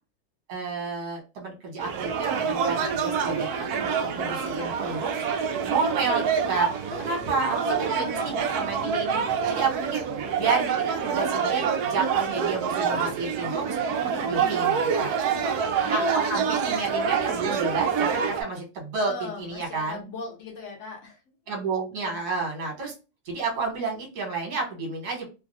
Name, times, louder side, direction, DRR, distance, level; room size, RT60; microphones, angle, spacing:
voice 1, 0.5-5.1 5.7-6.7 7.0-10.0 10.4-13.8 14.2-15.1 15.9-19.1 19.4-20.0 21.5-22.9 23.2-25.3, right 4 dB, 55° right, 0 dB, 1.5 m, -30 dB
sound 1, 1.8-18.4, right 6 dB, 75° right, 0.8 m, -27 dB
voice 2, 6.9-7.4 7.8-8.3 13.9-14.5 15.3-15.9 19.0-21.2 21.9-22.2, left 3 dB, 50° left, 1 dB, 0.9 m, -40 dB
3.2 x 2.2 x 2.6 m, 0.30 s
omnidirectional pair, 2.1 m